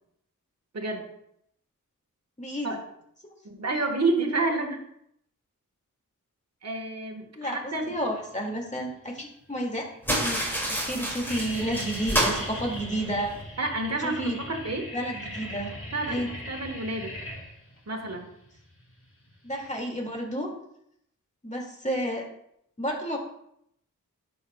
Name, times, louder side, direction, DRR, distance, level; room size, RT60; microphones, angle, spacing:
voice 1, 0.7-1.1 2.6-2.8 3.4-4.8 6.6-8.0 13.6-14.9 15.9-17.2 17.9-18.3, right 2 dB, 50° right, 3 dB, 1.3 m, -29 dB
voice 2, 2.4-2.7 7.4-9.9 10.2-10.4 10.8-13.3 14.0-14.4 14.9-15.7 16.1-16.3 19.4-20.5 21.4-22.2 22.8-23.2, equal, 20° left, 0 dB, 2.1 m, -31 dB
sound 1, 8.6-9.2 9.8-9.9 10.2-10.6 10.8-19.8, left 1 dB, 40° left, 2.8 m, -40 dB
sound 2, 10.0-13.4, right 1 dB, 5° left, 2.3 m, -29 dB
11.0 x 5.3 x 2.3 m, 0.73 s
cardioid pair, 55°, 33 cm